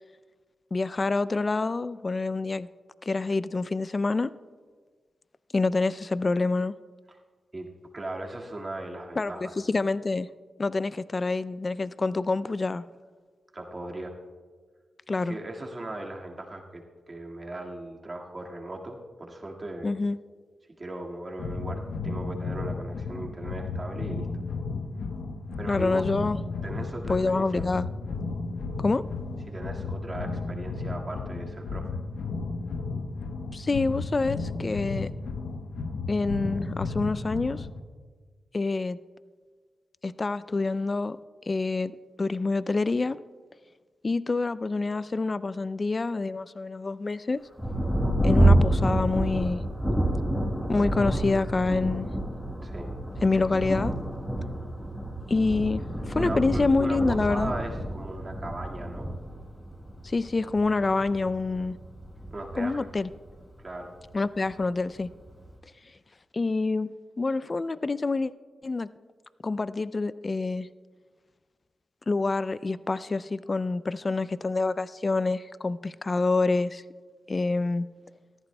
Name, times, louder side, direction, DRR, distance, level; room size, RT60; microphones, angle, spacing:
voice 1, 0.7-2.7 3.0-4.3 5.5-6.7 9.2-9.3 9.7-10.3 10.6-12.8 15.1-15.3 19.8-20.2 25.7-26.4 27.1-27.9 28.8-29.0 33.5-35.1 36.1-37.7 38.5-39.0 40.0-41.2 41.5-43.2 44.0-47.4 48.2-49.6 50.7-52.1 53.2-53.9 55.3-57.5 60.0-61.8 62.6-63.1 64.1-65.1 66.3-66.9 67.2-68.3 68.6-68.9 69.4-70.7 72.1-76.8 77.3-77.9, left 3 dB, 40° left, 16 dB, 0.3 m, -27 dB
voice 2, 7.9-9.5 13.5-14.1 15.3-19.9 20.8-24.3 25.6-26.1 26.6-27.7 29.5-31.9 52.6-52.9 56.2-59.1 62.3-62.9 63.6-63.9, right 2 dB, 35° right, 1 dB, 1.8 m, -38 dB
sound 1, 21.4-37.8, left 3 dB, 80° left, 0.8 m, -34 dB
Thunder, 47.6-63.6 64.4-64.5 65.0-65.5, right 1 dB, 15° left, 4.5 m, -28 dB
19.0 x 14.0 x 2.2 m, 1.5 s
cardioid pair, 55°, 0 cm